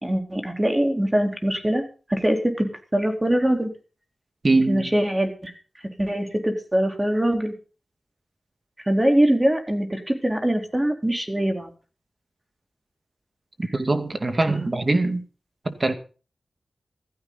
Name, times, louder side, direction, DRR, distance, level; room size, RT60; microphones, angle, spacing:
voice 1, 0.0-1.8 2.1-3.7 4.7-5.5 6.0-7.5 8.9-11.7 14.5-14.7, right 1 dB, 20° right, 4.0 m, -23 dB
voice 2, 4.4-4.9 13.7-15.2 15.7-15.9, right 2 dB, 40° right, 2.3 m, -22 dB
15.5 x 14.5 x 4.1 m
cardioid pair, 60°, 0 cm